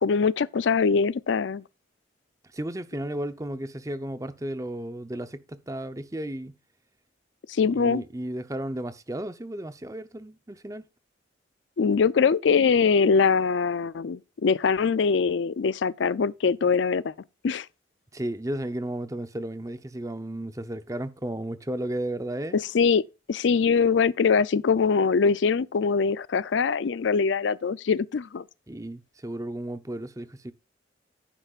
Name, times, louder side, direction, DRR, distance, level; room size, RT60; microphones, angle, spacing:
voice 1, 0.0-1.6 7.5-8.0 11.8-17.1 17.4-17.7 22.7-23.0 23.3-28.4, left 5 dB, 75° left, 0.4 m, -23 dB
voice 2, 2.4-6.6 7.7-10.8 18.1-22.6 28.7-30.5, right 1 dB, 15° right, 0.7 m, -34 dB
10.0 x 10.0 x 2.4 m
head